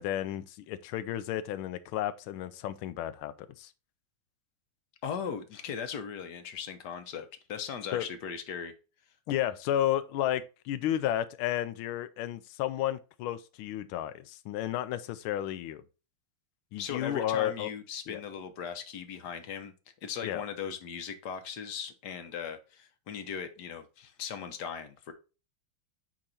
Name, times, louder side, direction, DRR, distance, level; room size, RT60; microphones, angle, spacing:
voice 1, 0.0-3.7 7.9-8.1 9.3-15.8 16.7-17.7 18.1-18.2 20.2-20.4, left 12 dB, 85° left, 1.5 m, -32 dB
voice 2, 5.0-8.7 16.8-19.7 20.0-25.1, left 7 dB, 60° left, 1.3 m, -38 dB
8.7 x 3.0 x 4.2 m
omnidirectional pair, 2.2 m